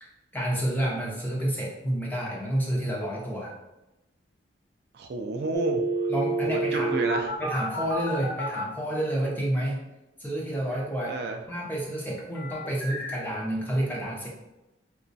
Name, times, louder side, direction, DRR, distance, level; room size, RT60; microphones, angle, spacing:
voice 1, 0.0-3.5 6.1-7.0 7.4-9.8 10.2-11.2 11.5-14.3, right 1 dB, 10° left, -3 dB, 0.6 m, -29 dB
voice 2, 4.9-5.8 6.4-7.3 11.1-11.4, right 3 dB, 55° right, 4 dB, 0.3 m, -31 dB
sound 1, 5.5-8.6 12.3-13.2, right 2 dB, 85° left, 0.6 m, -29 dB
4.0 x 2.2 x 2.6 m, 0.98 s
head